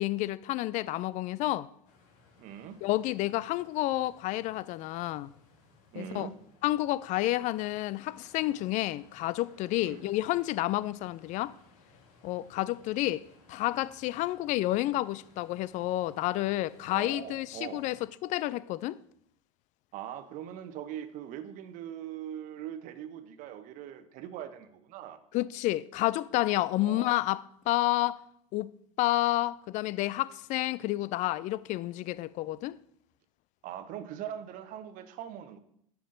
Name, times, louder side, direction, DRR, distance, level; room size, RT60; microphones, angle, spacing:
voice 1, 0.0-1.7 2.8-5.3 5.9-6.3 6.6-11.5 12.2-19.0 25.3-28.2 28.5-28.7 29.0-32.8, left 16 dB, 45° left, 0.4 m, -30 dB
sound 1, 1.8-18.0, left 4 dB, 60° left, 2.2 m, -61 dB
voice 2, 2.4-2.8 5.9-6.3 9.8-10.0 10.8-10.9 16.9-17.8 19.9-25.2 26.8-27.2 33.6-35.6, right 10 dB, 50° right, 1.0 m, -41 dB
10.0 x 7.1 x 3.9 m
hypercardioid pair, 90°, 18 cm